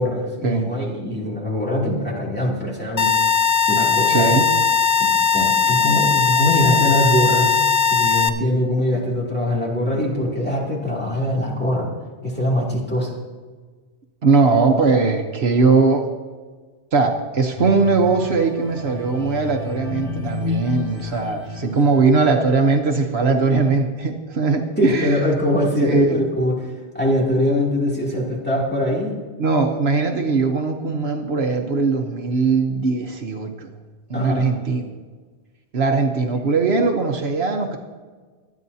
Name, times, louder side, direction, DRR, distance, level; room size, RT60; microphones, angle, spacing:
voice 1, 0.0-3.1 3.7-4.4 5.0-7.6 7.9-11.9 12.2-13.1 24.8-26.5 26.9-29.2 34.1-34.5, left 1 dB, 10° left, -4 dB, 2.7 m, -22 dB
sound 1, 3.0-8.3, left 6 dB, 45° left, 0.7 m, -18 dB
voice 2, 4.1-4.4 14.2-16.1 16.9-25.2 25.8-26.2 29.4-33.7 34.1-34.9 35.7-37.8, right 4 dB, 65° right, 4 dB, 1.2 m, -20 dB
sound 2, 17.6-22.8 23.3-23.5, left 3 dB, 70° left, 2.9 m, -31 dB
24.5 x 9.3 x 2.8 m, 1.4 s
omnidirectional pair, 1.1 m